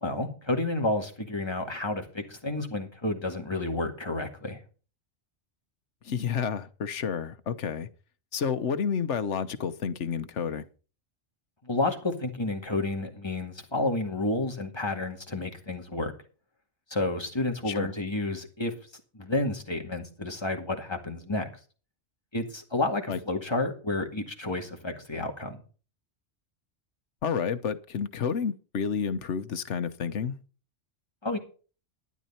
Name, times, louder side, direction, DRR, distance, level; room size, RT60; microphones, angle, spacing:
voice 1, 0.0-4.6 11.6-16.1 16.9-18.7 19.1-21.5 22.3-25.6 31.2-31.4, left 2 dB, 20° left, 2.1 m, -30 dB
voice 2, 6.0-7.9 8.3-10.6 17.7-17.9 23.1-23.2 27.2-30.4, left 6 dB, 80° left, 1.3 m, -30 dB
12.5 x 10.5 x 4.3 m
omnidirectional pair, 1.2 m